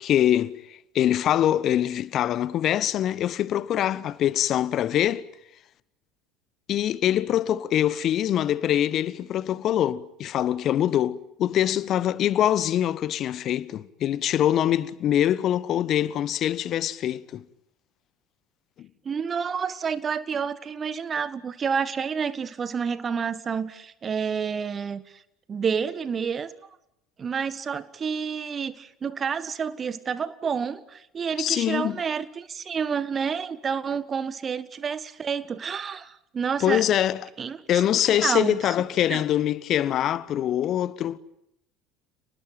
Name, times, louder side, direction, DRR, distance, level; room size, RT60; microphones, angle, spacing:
voice 1, 0.0-5.2 6.7-17.4 18.8-18.9 31.4-32.0 36.6-37.3 37.7-41.2, left 11 dB, 45° left, 1.2 m, -24 dB
voice 2, 19.0-25.0 25.5-26.5 27.2-36.8 37.4-37.6 38.2-38.6 39.1-39.2, right 6 dB, 30° right, 1.6 m, -29 dB
30.0 x 20.0 x 9.0 m
figure-of-eight pair, 65°, 0 cm